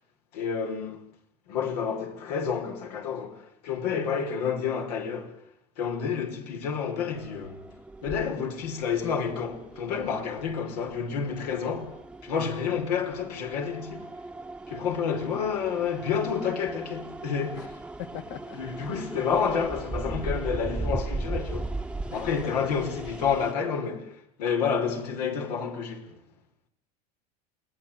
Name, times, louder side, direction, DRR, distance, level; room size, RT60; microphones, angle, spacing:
voice 1, 0.3-1.0 1.5-5.3 5.8-7.6 8.0-12.0 12.2-14.1 14.7-17.8 18.5-21.7 22.1-26.1, left 6 dB, 90° left, 5.9 m, -29 dB
sound 1, 7.1-23.5, right 2 dB, 5° right, 1.1 m, -38 dB
voice 2, 18.0-18.6 22.1-22.7, left 9 dB, 65° left, 2.2 m, -41 dB
29.0 x 20.0 x 9.3 m
supercardioid pair, 110°, 20 cm